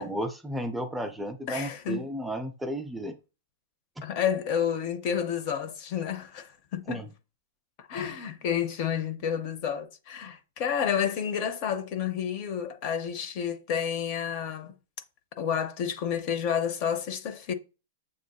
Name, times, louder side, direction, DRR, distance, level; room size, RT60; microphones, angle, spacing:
voice 1, 0.0-3.2 6.9-7.1, right 1 dB, 5° right, 0.4 m, -33 dB
voice 2, 1.5-2.0 4.0-7.0 7.9-14.7 15.4-17.5, left 8 dB, 40° left, 0.6 m, -30 dB
7.2 x 2.6 x 2.2 m
hypercardioid pair, 150°, 0 cm